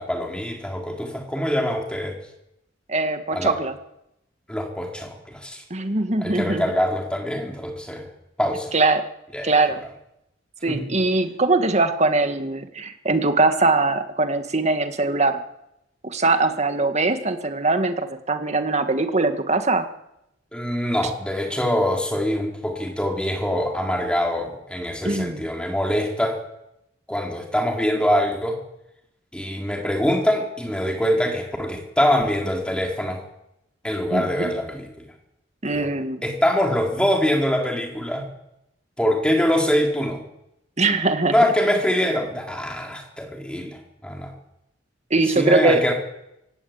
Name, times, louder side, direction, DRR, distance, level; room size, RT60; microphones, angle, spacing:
voice 1, 0.0-2.1 3.3-3.5 4.5-5.6 6.2-8.0 8.4-8.7 9.3-9.6 10.7-10.9 20.5-26.4 27.1-28.6 29.3-33.2 33.8-35.1 35.6-35.9 36.2-38.3 39.0-40.2 41.3-44.3 45.3-45.9, equal, 5° left, 1 dB, 4.2 m, -24 dB
voice 2, 2.9-3.7 5.7-6.7 8.7-9.0 9.4-9.8 10.6-15.4 16.0-19.9 25.0-25.4 34.1-34.5 35.6-36.2 40.8-41.4 45.1-45.8, right 3 dB, 35° right, 8 dB, 1.9 m, -21 dB
24.0 x 17.5 x 8.9 m, 0.86 s
head